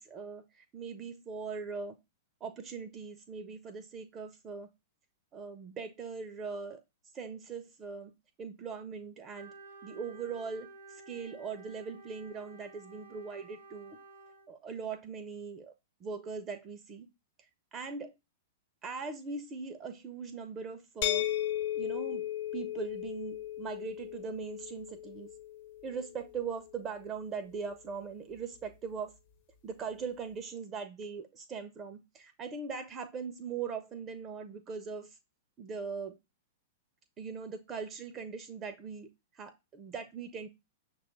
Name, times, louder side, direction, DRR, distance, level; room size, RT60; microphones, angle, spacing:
voice 1, 0.0-2.0 2.4-4.7 5.3-6.8 7.1-8.1 8.4-9.5 9.8-14.0 14.5-15.7 16.0-17.1 17.7-18.1 18.8-21.3 21.8-22.3 22.5-25.3 25.8-29.1 29.6-35.1 35.6-36.2 37.2-39.1 39.3-40.5, right 5 dB, 25° right, 0.4 m, -40 dB
Wind instrument woodwind instrument, 9.3-14.5, right 3 dB, 80° right, 0.7 m, -52 dB
sound 1, 21.0-26.8, left 13 dB, 45° left, 0.6 m, -36 dB
5.9 x 2.2 x 3.0 m
figure-of-eight pair, 100°, 0 cm